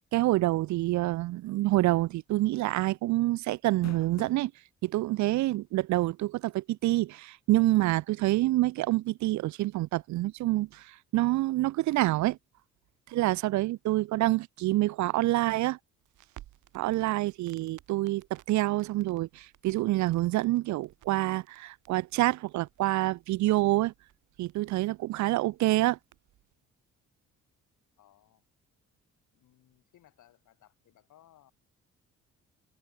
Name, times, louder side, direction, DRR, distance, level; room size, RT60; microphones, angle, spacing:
voice 1, 0.1-4.5 4.8-10.8 11.1-12.4 13.1-15.8 16.7-23.9 24.4-26.0, right 17 dB, 70° right, 0.5 m, -27 dB
sound 1, 1.9-2.1 2.4-2.5 3.6-4.5 5.3-5.4 6.9-7.0, left 9 dB, 60° left, 4.7 m, -46 dB
Crackle, 16.0-26.5, right 15 dB, 85° right, 3.2 m, -58 dB
voice 2, 28.0-28.4 29.3-31.5, left 12 dB, 75° left, 6.5 m, -62 dB
cardioid pair, 90°, 30 cm